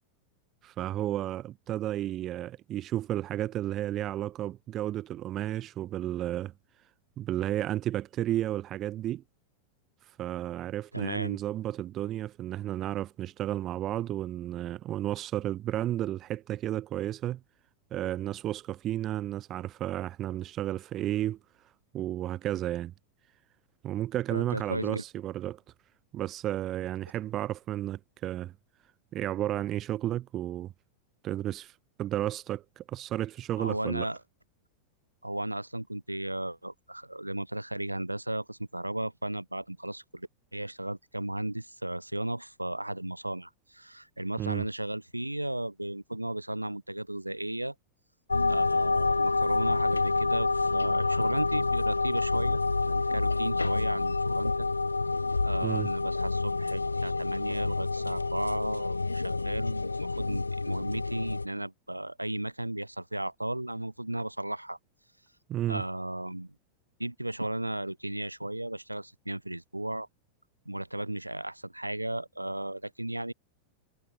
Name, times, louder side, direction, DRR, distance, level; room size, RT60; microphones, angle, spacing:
voice 1, 0.6-6.5 7.2-9.2 10.2-17.4 17.9-21.4 21.9-22.9 23.8-25.6 26.1-28.5 29.1-30.7 31.2-34.0 44.4-44.6 55.6-55.9 65.5-65.8, right 13 dB, 30° right, 6.8 m, -32 dB
voice 2, 10.9-11.4 24.3-25.0 33.6-34.2 35.2-47.7 48.5-54.7 55.4-64.8 65.7-66.5 67.0-70.1 70.7-73.3, right 1 dB, 85° right, 5.9 m, -35 dB
sound 1, 48.3-61.5, left 3 dB, 80° left, 1.2 m, -28 dB
figure-of-eight pair, 90°, 0 cm